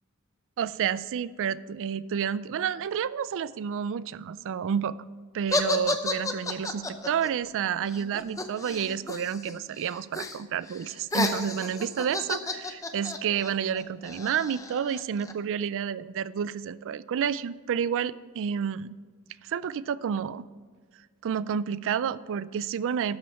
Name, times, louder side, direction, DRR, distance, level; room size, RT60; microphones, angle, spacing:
voice 1, 0.6-4.9 5.3-19.0 19.4-20.4 21.2-23.2, right 8 dB, 60° right, 17 dB, 0.3 m, -30 dB
sound 1, 5.5-9.5 9.8-10.4 10.7-15.3, left 2 dB, 15° left, 0.7 m, -32 dB
12.0 x 5.2 x 5.6 m, 1.5 s
head